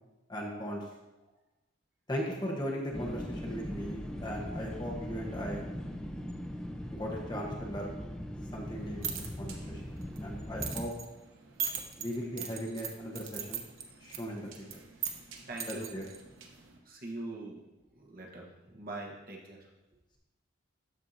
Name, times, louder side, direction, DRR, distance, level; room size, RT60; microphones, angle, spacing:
voice 1, 0.3-0.8 2.1-5.6 6.9-8.0 8.5-9.8 10.2-10.9 12.0-13.6 14.0-14.5 15.7-16.0, equal, 20° left, -2 dB, 1.1 m, -38 dB
sound 1, 2.9-10.8, equal, 5° left, 0.5 m, -40 dB
sound 2, 8.7-16.8, right 8 dB, 80° right, 0.9 m, -41 dB
voice 2, 11.5-12.0 15.4-15.9 16.8-17.6 17.9-19.7, right 2 dB, 45° right, -1 dB, 1.2 m, -43 dB
13.0 x 4.6 x 2.7 m, 1.1 s
head